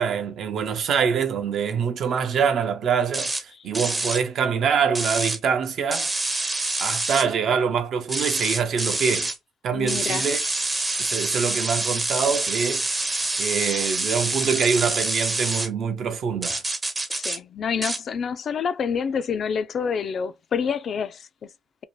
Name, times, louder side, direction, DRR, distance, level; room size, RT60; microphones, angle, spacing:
voice 1, 0.0-6.1 6.8-9.3 9.6-10.4 11.0-12.8 13.4-16.6, right 6 dB, 65° right, 0.6 m, -24 dB
sound 1, 3.1-3.4 3.7-4.2 5.0-5.4 5.9-7.3 8.1-9.4 9.9-15.7 16.4-17.4 17.8-18.0, right 2 dB, 20° right, 0.5 m, -26 dB
voice 2, 9.7-10.3 17.1-21.3, left 6 dB, 55° left, 0.3 m, -27 dB
2.7 x 2.1 x 3.0 m
cardioid pair, 90°, 0 cm